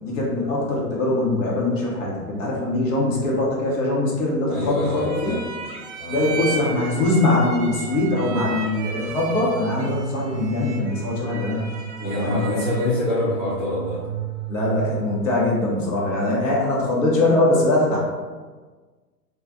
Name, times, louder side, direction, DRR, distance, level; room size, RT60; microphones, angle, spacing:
voice 1, 0.0-5.3 6.1-11.6 12.0-12.6 14.5-18.0, left 2 dB, 50° left, -4 dB, 1.2 m, -22 dB
voice 2, 4.5-5.4 6.0-6.2 12.0-14.0, left 1 dB, 20° left, -12 dB, 0.4 m, -25 dB
sound 1, 4.9-13.0, right 4 dB, 50° right, 0.5 m, -35 dB
sound 2, 7.7-15.1, right 12 dB, 30° right, 0.9 m, -34 dB
2.4 x 2.4 x 3.7 m, 1.4 s
hypercardioid pair, 135°, 48 cm